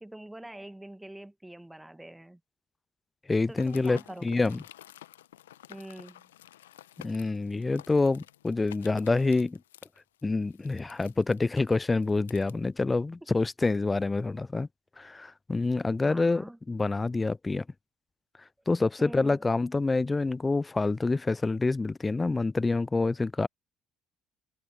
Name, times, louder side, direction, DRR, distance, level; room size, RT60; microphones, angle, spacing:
voice 1, 0.0-2.4 3.5-4.3 5.7-6.2 16.0-16.6 19.0-19.4, right 1 dB, 10° right, 1.0 m, -44 dB
voice 2, 3.3-4.6 7.0-9.6 10.2-14.7 15.0-17.6 18.7-23.5, left 3 dB, 20° left, 0.5 m, -27 dB
sound 1, 3.5-12.5, left 13 dB, 80° left, 0.8 m, -52 dB
hypercardioid pair, 55°, 0 cm